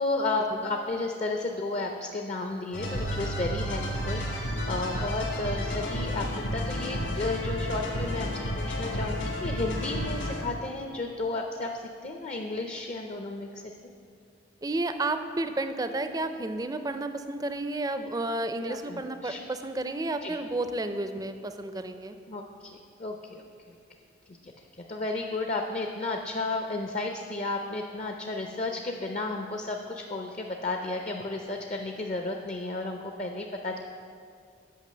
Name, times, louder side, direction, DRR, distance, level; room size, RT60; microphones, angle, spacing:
voice 1, 0.0-13.6 18.6-19.4 20.2-20.4 22.3-23.7 24.3-24.5 24.9-33.8, left 2 dB, 35° left, 3 dB, 0.5 m, -33 dB
sound 1, 2.7-10.7, equal, 65° left, 1.8 m, -31 dB
voice 2, 14.6-22.2, right 2 dB, 20° right, 9 dB, 0.4 m, -31 dB
9.3 x 5.7 x 6.7 m, 2.3 s
head